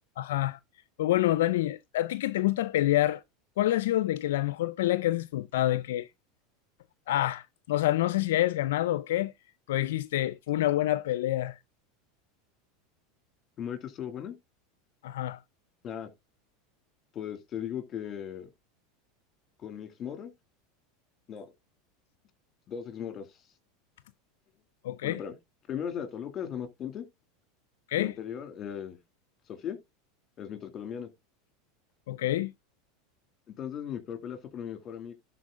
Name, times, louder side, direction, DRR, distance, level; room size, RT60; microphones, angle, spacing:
voice 1, 0.2-0.6 1.0-3.2 3.6-6.1 7.1-9.3 9.7-11.6 15.0-15.4 24.8-25.2 27.9-28.1 32.1-32.5, left 14 dB, 80° left, 0.4 m, -27 dB
voice 2, 13.6-14.4 15.8-16.1 17.1-18.5 19.6-20.3 21.3-21.5 22.7-23.4 25.0-25.3 25.7-27.0 28.0-29.0 29.5-29.8 30.4-31.1 33.5-35.1, left 8 dB, 35° left, 2.3 m, -37 dB
11.5 x 4.5 x 3.6 m
supercardioid pair, 110°, 0 cm